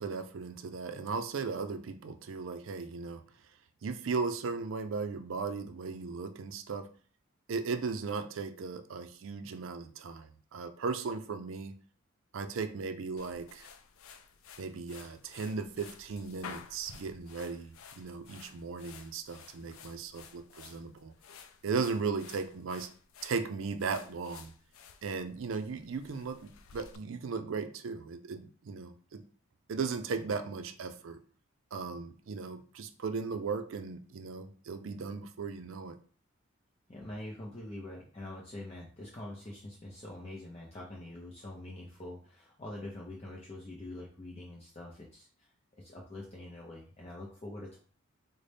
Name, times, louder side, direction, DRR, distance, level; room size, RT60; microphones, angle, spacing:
voice 1, 0.0-3.2 3.8-6.9 7.5-11.7 12.3-13.7 14.6-21.1 21.6-22.9 23.2-24.5 25.0-29.2 29.7-31.2 31.7-36.0, right 4 dB, 65° right, 8 dB, 0.4 m, -37 dB
sound 1, 13.2-27.0, left 6 dB, 75° left, 0.4 m, -53 dB
voice 2, 36.9-47.8, left 1 dB, 30° left, -4 dB, 0.6 m, -45 dB
4.0 x 2.1 x 3.3 m, 0.42 s
head